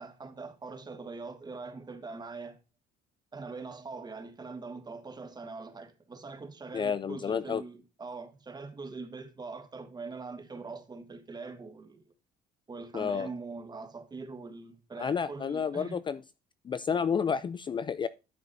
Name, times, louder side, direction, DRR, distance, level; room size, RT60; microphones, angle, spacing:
voice 1, 0.0-2.6 3.3-12.1 12.7-16.0, right 4 dB, 25° right, 1.4 m, -42 dB
voice 2, 6.7-7.6 12.9-13.3 15.0-16.2 16.7-18.1, left 7 dB, 30° left, 0.4 m, -30 dB
12.0 x 6.9 x 2.6 m
cardioid pair, 110°, 17 cm